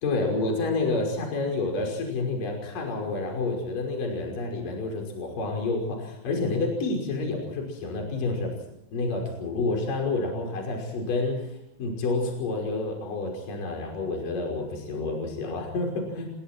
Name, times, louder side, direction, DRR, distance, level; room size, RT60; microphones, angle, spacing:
voice 1, 0.0-8.5 8.9-16.3, left 3 dB, 45° left, 1 dB, 7.0 m, -29 dB
27.5 x 25.5 x 4.6 m, 0.84 s
omnidirectional pair, 5.5 m